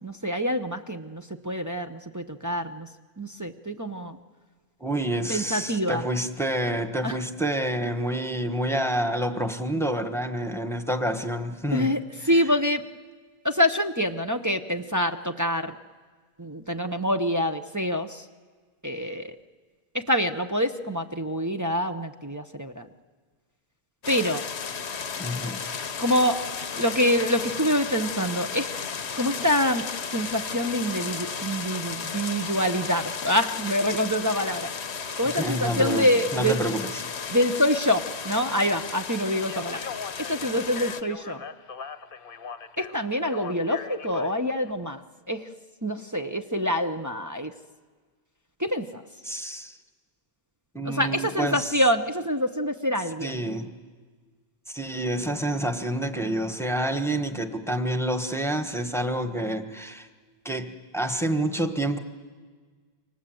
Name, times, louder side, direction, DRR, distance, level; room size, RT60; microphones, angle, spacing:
voice 1, 0.0-2.9 3.2-4.2 5.3-6.0 7.0-7.2 11.7-12.0 12.3-12.8 13.4-15.8 16.4-18.2 18.8-19.4 19.9-22.9 24.1-24.4 26.0-26.4 26.7-28.7 29.2-29.8 30.1-34.7 35.2-36.6 37.3-39.9 40.3-41.4 42.8-45.0 45.3-45.5 45.8-47.5 48.6-49.0 50.8-53.4, equal, 20° right, 4 dB, 0.8 m, -26 dB
voice 2, 4.8-12.0 25.2-25.6 35.4-36.1 36.3-36.8 49.2-49.8 50.7-51.7 53.2-53.7 54.7-60.1 60.4-62.0, right 1 dB, 5° left, 6 dB, 1.3 m, -28 dB
sound 1, 24.0-41.0, left 6 dB, 90° left, 1.3 m, -34 dB
Speech, 39.4-44.7, left 6 dB, 60° left, 1.1 m, -40 dB
28.5 x 24.5 x 7.8 m, 1.5 s
omnidirectional pair, 1.1 m